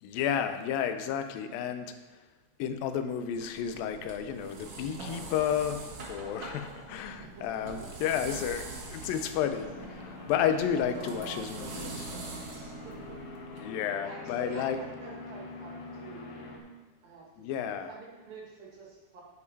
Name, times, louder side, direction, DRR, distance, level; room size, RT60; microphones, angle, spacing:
voice 1, 0.0-2.2 2.6-9.7 10.3-12.1 13.6-14.8 17.4-17.9, left 9 dB, 85° left, 9 dB, 2.4 m, -32 dB
sound 1, 3.2-13.6, right 3 dB, 65° right, 2.9 m, -44 dB
voice 2, 7.2-8.1 9.5-9.6 10.5-13.4 14.0-16.4 17.0-19.2, right 3 dB, 85° right, -3 dB, 3.8 m, -47 dB
sound 2, 9.5-16.6, left 2 dB, 60° left, 2.4 m, -44 dB
9.6 x 7.6 x 4.1 m, 1.2 s
omnidirectional pair, 4.0 m